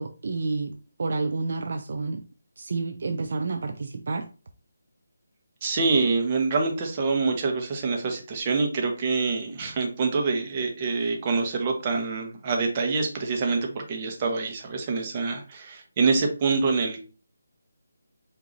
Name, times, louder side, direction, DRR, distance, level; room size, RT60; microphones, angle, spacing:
voice 1, 0.0-2.2 2.6-4.3, right 3 dB, 55° right, 6 dB, 0.4 m, -30 dB
voice 2, 5.6-17.0, right 4 dB, 25° right, 2 dB, 0.9 m, -26 dB
4.9 x 2.7 x 4.0 m, 0.36 s
figure-of-eight pair, 170°, 0 cm